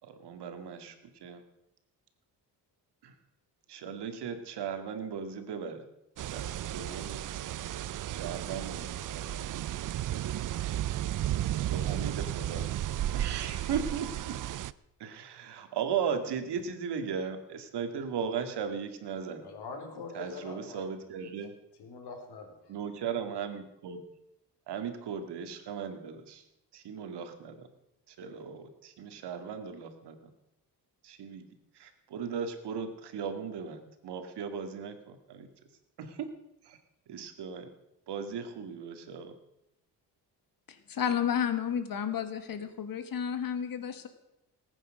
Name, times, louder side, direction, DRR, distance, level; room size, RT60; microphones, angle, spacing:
voice 1, 0.0-1.4 3.0-3.1 3.7-5.9 6.3-9.6 11.7-12.7 13.1-14.4 15.0-19.4 20.1-21.5 22.7-24.0 24.7-26.4 26.7-27.7 28.1-30.3 31.0-31.4 31.7-35.5 36.0-36.3 36.6-36.8 37.1-37.7 38.1-39.3, right 6 dB, 75° right, 7 dB, 2.2 m, -37 dB
sound 1, 6.2-14.7, right 13 dB, 50° right, 0.5 m, -34 dB
voice 2, 19.4-20.8 21.2-21.3 21.8-22.7, left 4 dB, 70° left, 3 dB, 4.1 m, -43 dB
voice 3, 40.7-44.1, left 8 dB, 55° left, 9 dB, 1.7 m, -32 dB
19.0 x 9.2 x 6.5 m, 0.88 s
cardioid pair, 110°, 41 cm